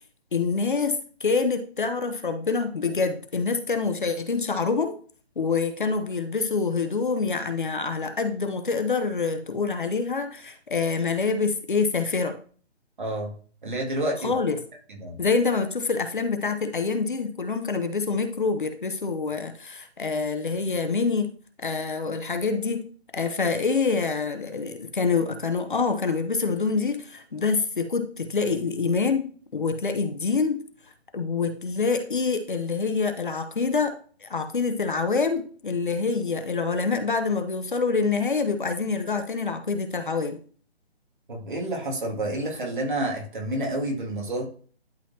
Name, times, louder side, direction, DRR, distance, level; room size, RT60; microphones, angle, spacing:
voice 1, 0.3-4.9 5.4-12.3 14.2-14.6 15.2-21.3 21.6-22.9 23.1-30.6 31.1-33.9 34.2-40.4, left 4 dB, 50° left, 8 dB, 0.9 m, -26 dB
voice 2, 13.0-13.3 13.6-14.4 14.9-15.2 41.3-44.4, right 1 dB, 50° right, -1 dB, 2.3 m, -29 dB
11.5 x 4.0 x 2.8 m, 0.43 s
hypercardioid pair, 180°, 32 cm